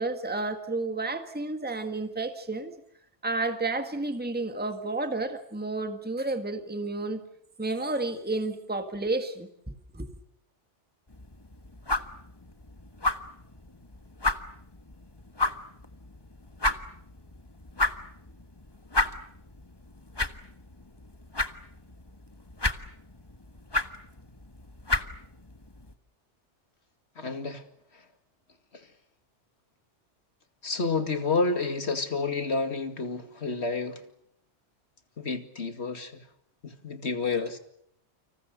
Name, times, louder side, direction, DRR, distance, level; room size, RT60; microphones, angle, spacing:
voice 1, 0.0-2.8 3.2-7.2 7.6-10.1, right 2 dB, 10° right, 1.7 m, -31 dB
sound 1, 11.1-25.9, left 2 dB, 20° left, 1.4 m, -33 dB
voice 2, 27.2-27.6 30.6-34.0 35.2-36.2 36.6-37.6, left 4 dB, 65° left, 2.6 m, -29 dB
30.0 x 26.0 x 6.7 m
omnidirectional pair, 1.2 m